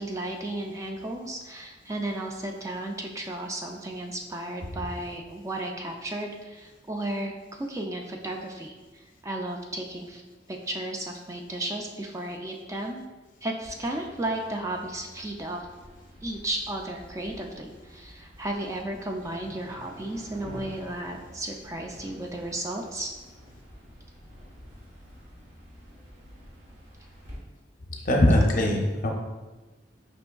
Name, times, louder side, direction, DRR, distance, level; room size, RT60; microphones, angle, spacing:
voice 1, 0.0-10.2 10.5-13.0 13.4-15.7 16.2-23.1, right 1 dB, 15° right, 1 dB, 0.3 m, -34 dB
sound 1, 13.6-27.4, equal, 75° right, 1.3 m, -48 dB
voice 2, 28.0-29.1, left 1 dB, 50° left, 2 dB, 0.6 m, -21 dB
5.2 x 3.4 x 2.2 m, 1.2 s
head